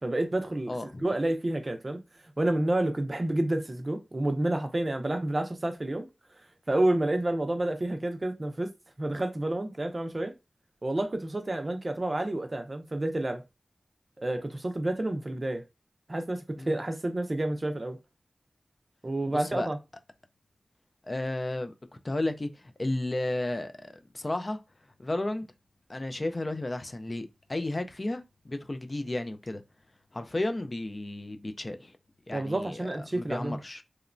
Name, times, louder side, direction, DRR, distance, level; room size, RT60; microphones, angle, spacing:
voice 1, 0.0-2.0 2.4-6.1 6.7-8.7 9.0-10.3 10.8-13.4 14.2-15.6 16.1-18.0 19.0-19.8 32.3-33.6, right 1 dB, 35° right, 0.4 m, -29 dB
voice 2, 0.7-1.1 16.6-16.8 19.3-19.7 21.0-21.7 22.0-24.6 25.0-25.5 25.9-29.6 30.1-32.0 32.3-33.8, left 2 dB, 35° left, 0.3 m, -33 dB
2.9 x 2.0 x 2.4 m
wide cardioid pair, 80°, 0 cm